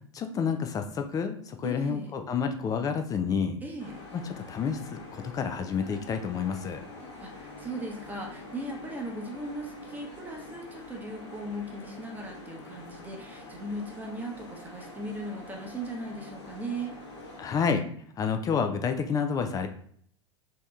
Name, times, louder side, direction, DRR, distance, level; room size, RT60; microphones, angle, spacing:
voice 1, 0.1-3.6 4.1-6.8 17.4-17.9 18.2-19.7, left 6 dB, 25° left, 7 dB, 0.4 m, -29 dB
voice 2, 1.6-2.1 3.6-4.0 7.2-17.0, right 1 dB, 10° right, 0 dB, 0.8 m, -38 dB
sound 1, 3.8-17.6, left 2 dB, 65° left, 1.0 m, -46 dB
3.4 x 2.8 x 3.2 m, 0.62 s
figure-of-eight pair, 90°, 15 cm